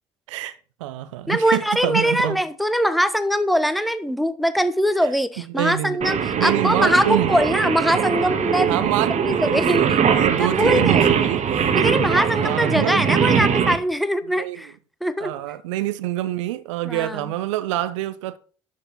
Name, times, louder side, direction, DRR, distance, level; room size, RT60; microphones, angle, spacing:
voice 1, 0.3-2.4 5.5-6.0 6.3-7.4 8.7-11.8 12.4-13.0 14.3-14.7 15.2-18.4, right 14 dB, 75° right, 0.6 m, -26 dB
voice 2, 1.3-8.8 9.1-9.8 10.3-11.3 11.7-14.7 15.0-15.3 16.8-17.2, equal, ahead, 1.3 m, -22 dB
Singing, 6.0-13.7, right 8 dB, 45° right, 1.6 m, -21 dB
12.0 x 4.8 x 7.2 m
figure-of-eight pair, 50°, 16 cm